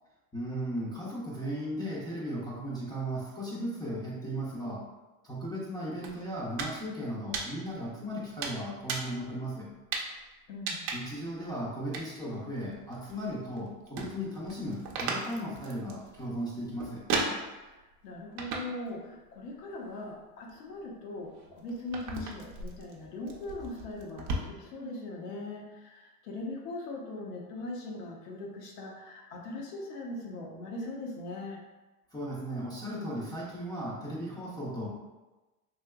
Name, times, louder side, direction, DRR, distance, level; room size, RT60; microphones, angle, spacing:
voice 1, 0.3-4.9 5.2-9.7 10.9-17.0 32.1-34.9, equal, 10° left, -7 dB, 0.5 m, -36 dB
sound 1, 6.0-6.8 7.1-7.9 8.4-9.2 9.9-10.2 10.7-11.2 11.9-12.1 12.6-13.6 13.9-17.8 18.4-18.9 19.2-19.9 20.5-24.3, right 4 dB, 50° right, 0.6 m, -36 dB
voice 2, 10.5-10.9 17.6-17.7 18.0-31.6, left 2 dB, 85° left, -1 dB, 0.9 m, -40 dB
3.2 x 2.8 x 2.2 m, 1.1 s
supercardioid pair, 120°, 47 cm